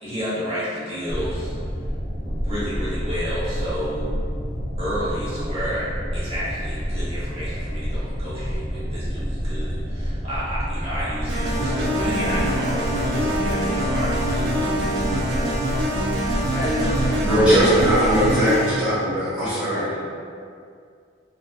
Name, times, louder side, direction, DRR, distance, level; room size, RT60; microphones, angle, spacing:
voice 1, 0.0-1.5 2.2-4.2 4.8-15.0, equal, 30° right, -10 dB, 0.7 m, -31 dB
sound 1, 1.1-18.4, equal, 10° left, 0.4 m, -28 dB
sound 2, 11.3-18.9, right 1 dB, 70° right, 0.5 m, -25 dB
voice 2, 16.5-17.2 19.6-20.0, left 1 dB, 65° left, -10 dB, 1.0 m, -29 dB
voice 3, 17.2-19.8, equal, 5° right, -14 dB, 1.2 m, -19 dB
2.5 x 2.3 x 2.3 m, 2.3 s
head